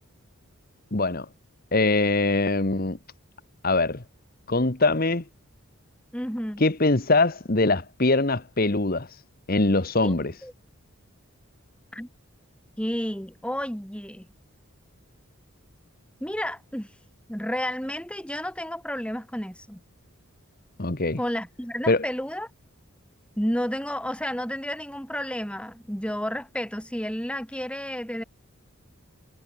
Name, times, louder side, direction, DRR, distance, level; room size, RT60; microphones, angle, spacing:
voice 1, 0.9-1.3 1.7-3.0 3.6-4.0 4.5-5.2 6.6-9.2 9.5-10.4 20.8-21.2 21.9-22.0, left 2 dB, 40° left, 1.4 m, -22 dB
voice 2, 6.1-6.7 10.0-10.2 10.4-10.5 11.9-12.1 12.8-14.3 16.2-16.9 17.3-19.8 21.2-22.5 23.4-28.2, equal, 5° left, 5.8 m, -31 dB
head